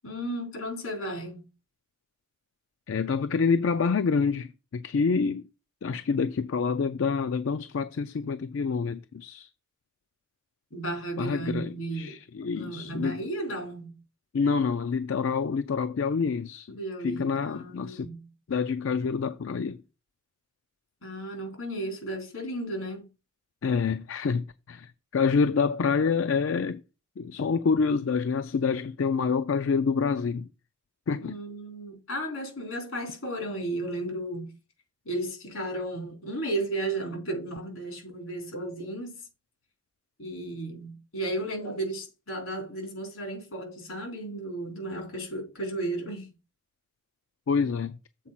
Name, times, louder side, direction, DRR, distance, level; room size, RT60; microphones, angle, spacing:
voice 1, 0.0-1.5 10.7-12.2 12.5-14.0 16.7-18.3 21.0-23.1 31.2-34.5 35.1-39.2 40.2-46.3, right 1 dB, 90° left, 3.9 m, -34 dB
voice 2, 2.9-5.5 5.8-9.5 11.2-13.2 14.3-16.8 17.0-18.1 18.5-19.8 23.6-26.8 27.2-30.5 31.1-31.4 47.5-48.0, left 5 dB, 70° left, 0.4 m, -27 dB
7.4 x 4.4 x 5.7 m
head